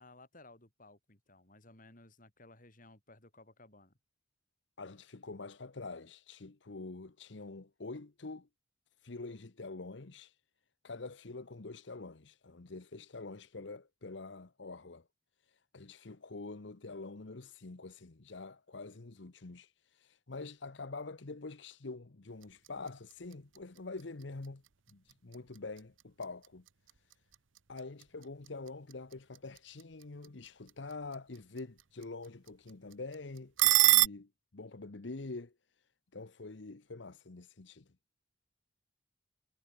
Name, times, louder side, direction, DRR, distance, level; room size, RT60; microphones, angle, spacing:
voice 1, 0.0-4.0, left 2 dB, 45° left, 5.4 m, -58 dB
voice 2, 4.8-8.5 9.0-10.4 10.8-15.0 15.5-24.6 24.9-26.6 27.7-35.5 36.1-37.9, left 3 dB, 70° left, 1.0 m, -46 dB
sound 1, 22.3-34.1, right 16 dB, 90° right, 1.0 m, -35 dB
head